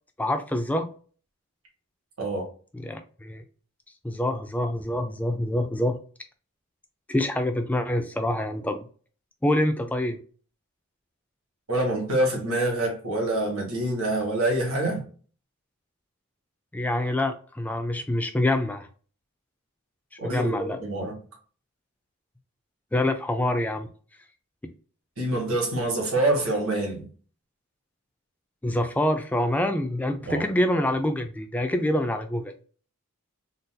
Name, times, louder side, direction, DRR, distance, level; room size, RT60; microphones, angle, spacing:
voice 1, 0.2-0.9 2.7-3.4 4.0-6.0 7.1-8.9 9.4-10.2 16.7-18.9 20.2-20.8 22.9-23.9 28.6-32.5, left 1 dB, 5° left, 0.3 m, -26 dB
voice 2, 2.2-2.5 11.7-15.0 20.2-21.2 25.2-27.1 30.3-30.4, right 1 dB, 75° right, 1.5 m, -26 dB
3.9 x 2.5 x 2.2 m
head